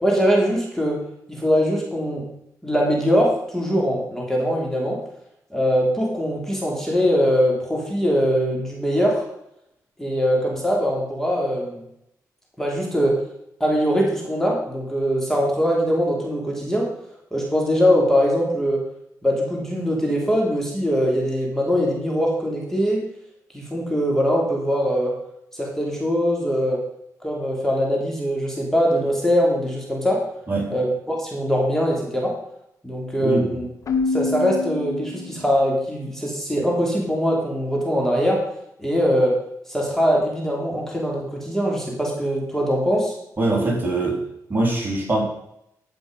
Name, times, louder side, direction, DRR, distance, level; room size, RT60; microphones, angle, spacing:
voice 1, 0.0-1.0 1.3-2.2 2.6-5.0 5.5-9.2 10.0-11.8 12.6-13.1 13.6-16.9 17.3-18.8 19.2-23.0 23.5-25.1 25.6-26.8 27.2-30.2 30.7-32.3 32.8-33.7 34.1-38.4 38.8-39.3 39.7-43.1 43.7-43.8, equal, 5° left, -2 dB, 3.2 m, -22 dB
voice 2, 33.2-33.6 43.4-44.2 44.5-45.2, right 2 dB, 30° right, -2 dB, 3.3 m, -22 dB
Keyboard (musical), 33.9-35.7, left 3 dB, 55° left, 1.2 m, -26 dB
14.0 x 5.4 x 5.2 m, 0.77 s
cardioid pair, 90°, 7 cm